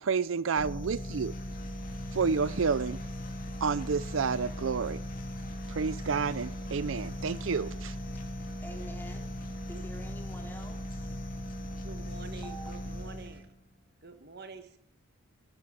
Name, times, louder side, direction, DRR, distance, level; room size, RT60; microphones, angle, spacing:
voice 1, 0.0-1.3 2.1-3.0 3.6-5.0 5.7-7.9, right 5 dB, 85° right, 0.5 m, -30 dB
sound 1, 0.5-13.5, equal, 45° left, 2.4 m, -38 dB
voice 2, 8.6-9.4 9.7-11.2 12.3-12.7, equal, 10° left, 2.9 m, -47 dB
voice 3, 11.8-13.5 14.0-14.8, right 4 dB, 55° right, 1.5 m, -47 dB
15.0 x 11.5 x 6.4 m
head